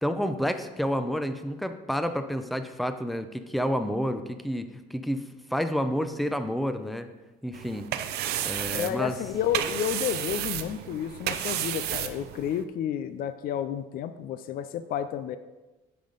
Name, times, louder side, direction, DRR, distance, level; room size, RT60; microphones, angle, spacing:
voice 1, 0.0-7.1 7.4-7.9 8.4-9.2, equal, ahead, 9 dB, 0.5 m, -29 dB
sound 1, 7.5-12.6, right 11 dB, 75° right, 0.5 m, -32 dB
voice 2, 8.7-15.4, left 9 dB, 60° left, 12 dB, 0.4 m, -31 dB
8.5 x 5.6 x 3.9 m, 1.2 s
cardioid pair, 110°, 17 cm